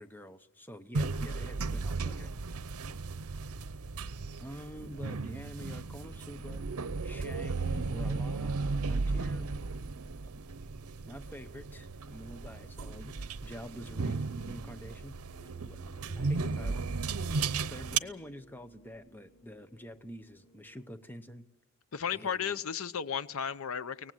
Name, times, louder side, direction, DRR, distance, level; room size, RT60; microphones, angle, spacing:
voice 1, 0.0-2.3 4.4-6.6 7.0-8.6 8.9-9.5 11.0-15.2 15.6-15.8 16.2-16.9 17.6-21.4 22.1-22.6, equal, 10° left, 10 dB, 0.7 m, -47 dB
sound 1, 0.9-18.0, right 4 dB, 80° right, 0.8 m, -35 dB
sound 2, 15.2-21.3, right 2 dB, 85° left, 5.4 m, -60 dB
voice 2, 21.9-24.1, left 7 dB, 70° left, 15 dB, 0.7 m, -34 dB
23.5 x 18.5 x 7.7 m, 1.0 s
head